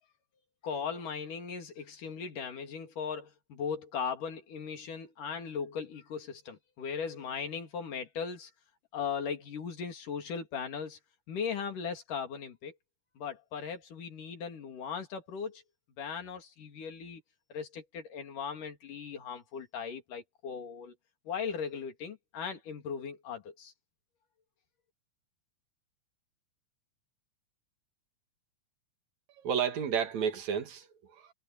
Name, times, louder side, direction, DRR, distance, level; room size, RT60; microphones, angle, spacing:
voice 1, 0.6-8.5 8.9-11.0 11.3-12.7 13.2-15.6 16.0-17.2 17.5-20.9 21.3-23.7, left 6 dB, 75° left, 4.3 m, -38 dB
voice 2, 29.4-31.3, right 7 dB, 60° right, 3.1 m, -32 dB
omnidirectional pair, 3.8 m